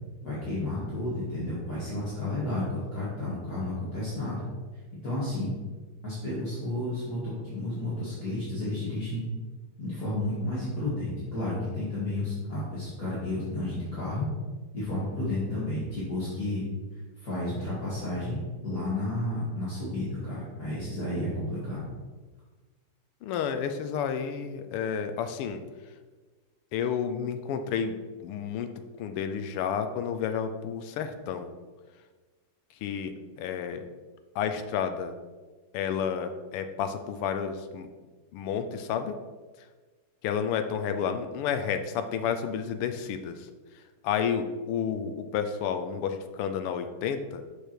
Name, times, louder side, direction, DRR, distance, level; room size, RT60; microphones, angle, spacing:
voice 1, 0.2-4.4 5.0-5.5 6.0-9.2 9.8-14.3 14.7-16.6 17.2-21.8, left 1 dB, 45° left, -9 dB, 2.2 m, -32 dB
voice 2, 23.2-25.6 26.7-28.7 29.0-31.5 32.8-33.8 34.3-35.1 35.7-37.9 38.3-39.2 40.2-43.5 44.0-47.4, left 7 dB, 85° left, 8 dB, 1.6 m, -31 dB
6.8 x 4.9 x 4.4 m, 1.3 s
omnidirectional pair, 2.4 m